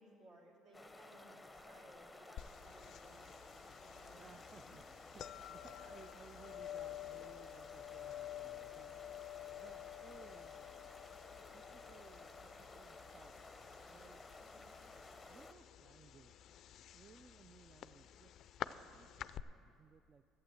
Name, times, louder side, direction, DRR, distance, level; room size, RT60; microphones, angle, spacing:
voice 1, 0.0-3.5 3.8-4.2 5.6-6.1 14.4-14.6, right 1 dB, 60° right, -1 dB, 2.8 m, -62 dB
sound 1, 0.7-15.5, left 2 dB, 10° left, 0.8 m, -56 dB
sound 2, 2.4-19.4, left 12 dB, 60° left, 0.3 m, -51 dB
voice 2, 4.1-10.7 11.5-13.5 13.9-14.2 15.3-16.6 16.9-18.3 18.6-20.2, right 6 dB, 35° right, 10 dB, 0.3 m, -62 dB
12.0 x 8.4 x 7.8 m, 2.5 s
supercardioid pair, 90°, 0 cm